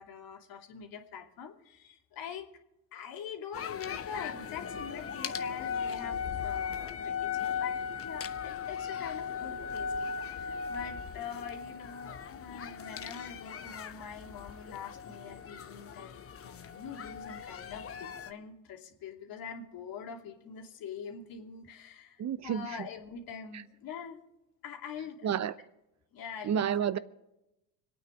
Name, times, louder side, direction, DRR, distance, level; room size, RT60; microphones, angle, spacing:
voice 1, 0.0-2.5 2.9-7.8 8.0-24.2 24.6-25.4 26.1-26.6, left 7 dB, 60° left, 2.7 m, -44 dB
sound 1, 3.5-18.3, left 6 dB, 35° left, 1.1 m, -38 dB
voice 2, 22.2-22.6 25.2-25.5 26.4-27.0, right 8 dB, 45° right, 0.9 m, -29 dB
25.0 x 9.2 x 5.0 m
supercardioid pair, 75°, 39 cm